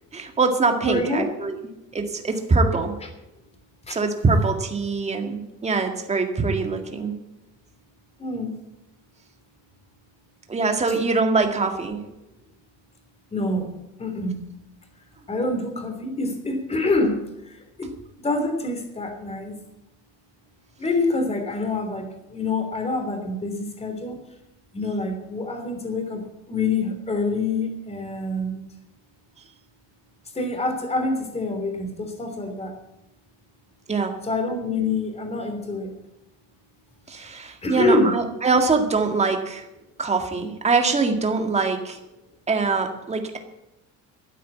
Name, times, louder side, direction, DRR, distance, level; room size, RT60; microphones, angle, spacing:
voice 1, 0.1-1.6 1.9-3.0 3.9-7.1 10.5-12.0 33.9-34.2 37.1-39.7 40.0-42.0 42.5-43.4, right 4 dB, 20° right, 5 dB, 2.0 m, -23 dB
voice 2, 0.8-1.3 3.9-4.0 8.2-8.5 13.3-13.7 14.0-14.4 15.3-17.2 17.5-17.9 18.2-19.5 20.8-24.2 24.7-28.6 30.3-32.7 34.2-35.9 37.6-38.1, left 2 dB, 20° left, 5 dB, 3.1 m, -26 dB
13.0 x 9.2 x 8.4 m, 0.92 s
cardioid pair, 150°, 32 cm